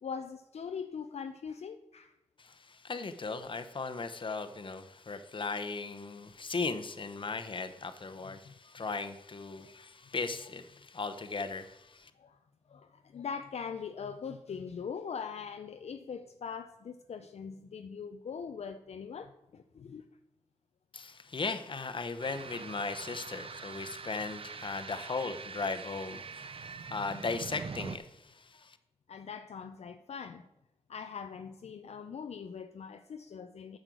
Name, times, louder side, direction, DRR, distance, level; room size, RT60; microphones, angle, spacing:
voice 1, 0.0-2.1 7.2-7.3 8.4-8.5 9.6-9.7 12.2-12.4 12.7-20.0 29.1-30.5 30.9-33.8, left 6 dB, 65° left, 0.5 m, -42 dB
voice 2, 2.4-12.1 20.9-28.8, left 4 dB, 45° left, 0.9 m, -37 dB
sound 1, 22.2-28.0, right 5 dB, 50° right, 0.6 m, -44 dB
9.0 x 6.4 x 6.2 m
cardioid pair, 60°, 12 cm